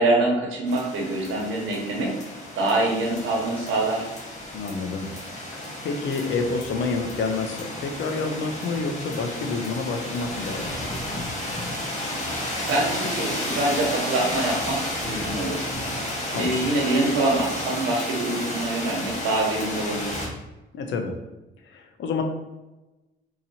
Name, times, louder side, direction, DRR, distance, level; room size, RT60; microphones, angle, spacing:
voice 1, 0.0-2.1 2.6-4.1 12.6-20.2, right 2 dB, 80° right, -1 dB, 1.1 m, -25 dB
sound 1, 0.7-20.3, left 1 dB, 35° left, 1.3 m, -32 dB
voice 2, 4.5-5.1 5.8-11.1 16.3-16.7 20.7-21.1 21.6-22.2, left 4 dB, 70° left, 4 dB, 0.6 m, -28 dB
4.0 x 2.9 x 2.8 m, 1.0 s
cardioid pair, 90°, 20 cm